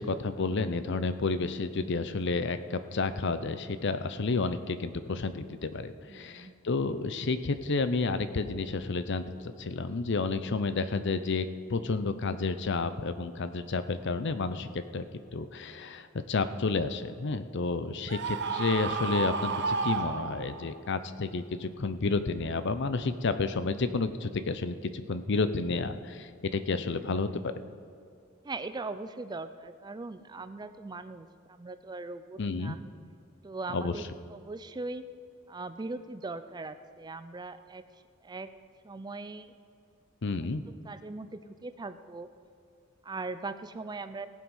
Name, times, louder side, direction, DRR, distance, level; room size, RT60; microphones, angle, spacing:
voice 1, 0.0-15.0 15.3-27.3 32.4-32.8 33.7-33.9 40.2-40.6, left 3 dB, 60° left, 11 dB, 0.6 m, -31 dB
voice 2, 6.1-6.5 28.4-32.8 33.4-34.0 34.3-35.0 35.5-37.8 38.2-38.5 38.8-39.5 40.8-42.3 43.0-44.3, right 3 dB, 20° right, 11 dB, 0.4 m, -40 dB
Screaming, 18.1-20.8, right 4 dB, 60° right, 0.8 m, -31 dB
17.5 x 7.6 x 5.5 m, 2.4 s
head